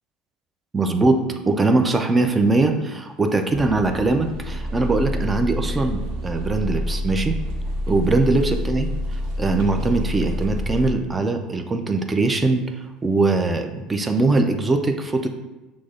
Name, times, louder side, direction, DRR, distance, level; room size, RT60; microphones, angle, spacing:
voice 1, 0.7-7.4 7.9-12.6 13.0-15.3, right 3 dB, 20° right, 5 dB, 0.4 m, -21 dB
sound 1, 3.5-10.9, equal, 70° right, 0.6 m, -27 dB
6.1 x 2.0 x 2.4 m, 1.1 s
supercardioid pair, 90°, 0 cm